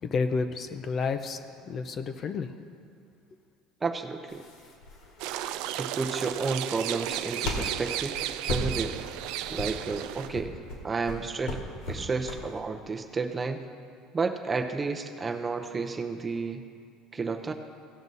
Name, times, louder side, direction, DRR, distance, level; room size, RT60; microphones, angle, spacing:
voice 1, 0.0-1.4 1.7-2.5, left 5 dB, 35° left, 8 dB, 0.6 m, -30 dB
voice 2, 3.8-4.4 5.8-8.2 8.5-8.9 9.5-10.5 10.8-11.6 11.9-13.6 14.1-16.6 17.1-17.5, right 4 dB, 20° right, 5 dB, 0.7 m, -31 dB
sound 1, 4.3-12.6, left 1 dB, 70° left, 1.9 m, -37 dB
sound 2, 5.2-10.3, right 12 dB, 70° right, 0.4 m, -34 dB
17.0 x 6.1 x 4.1 m, 2.3 s
supercardioid pair, 120°, 0 cm